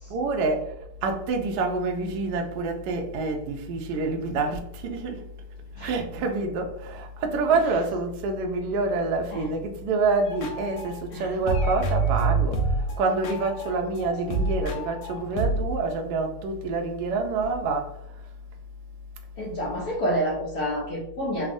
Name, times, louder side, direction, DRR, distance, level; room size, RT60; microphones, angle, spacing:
voice 1, 0.1-0.7 1.0-5.2 5.8-12.6 13.0-17.9, right 3 dB, 90° right, 0.9 m, -27 dB
sound 1, 10.2-11.2 11.4-15.8, right 3 dB, 75° left, 1.2 m, -27 dB
voice 2, 19.4-21.5, equal, 90° left, 0.8 m, -28 dB
3.5 x 2.0 x 2.4 m
omnidirectional pair, 2.3 m